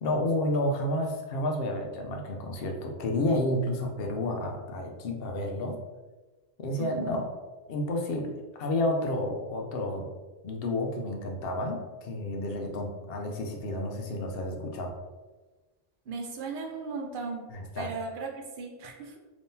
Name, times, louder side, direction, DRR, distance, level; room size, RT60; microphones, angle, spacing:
voice 1, 0.0-5.8 6.6-7.3 7.7-10.0 10.4-14.9 17.5-17.9, left 1 dB, 70° left, 2 dB, 0.8 m, -30 dB
voice 2, 6.8-7.2 16.1-17.5 17.7-19.2, right 4 dB, 60° right, 1 dB, 0.8 m, -37 dB
3.6 x 2.9 x 2.6 m, 1.2 s
omnidirectional pair, 1.0 m